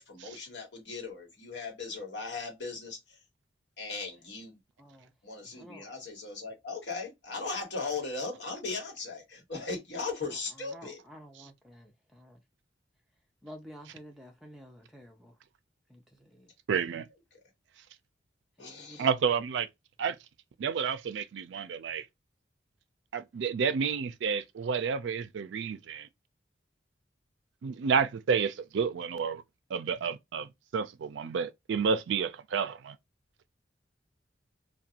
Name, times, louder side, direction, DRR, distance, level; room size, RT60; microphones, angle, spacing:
voice 1, 0.0-3.2 3.8-4.6 5.2-11.0 18.6-19.1, left 4 dB, 70° left, 1.1 m, -38 dB
voice 2, 4.8-5.1 5.5-5.9 10.7-12.4 13.4-15.3 15.9-16.5 18.6-19.1, equal, ahead, 0.5 m, -51 dB
voice 3, 16.7-17.1 19.0-19.7 20.0-20.2 20.6-22.1 23.1-26.1 27.6-29.4 29.7-33.0, right 6 dB, 75° right, 0.4 m, -30 dB
2.4 x 2.2 x 2.7 m
head